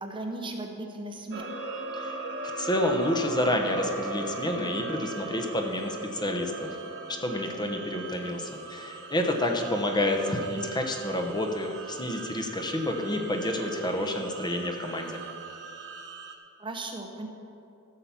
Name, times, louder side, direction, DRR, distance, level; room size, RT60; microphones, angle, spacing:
voice 1, 0.0-1.5 10.5-10.7 16.6-17.3, right 2 dB, 25° right, 3 dB, 0.8 m, -36 dB
sound 1, 1.3-16.3, right 3 dB, 55° right, 1.2 m, -39 dB
voice 2, 1.9-2.2 2.6-6.8 7.1-15.2, left 1 dB, 20° left, 3 dB, 1.0 m, -29 dB
14.5 x 7.0 x 5.8 m, 2.7 s
head